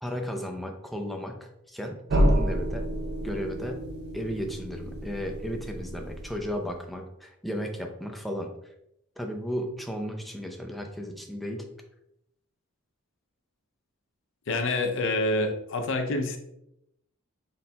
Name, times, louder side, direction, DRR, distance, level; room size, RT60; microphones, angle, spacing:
voice 1, 0.0-2.9 3.2-3.9 4.1-8.5 9.2-11.7, equal, ahead, 2 dB, 0.4 m, -34 dB
sound 1, 2.1-6.8, equal, 50° right, 0.5 m, -29 dB
voice 2, 14.5-16.4, left 2 dB, 60° left, 5 dB, 0.6 m, -27 dB
4.2 x 3.9 x 2.3 m, 0.80 s
head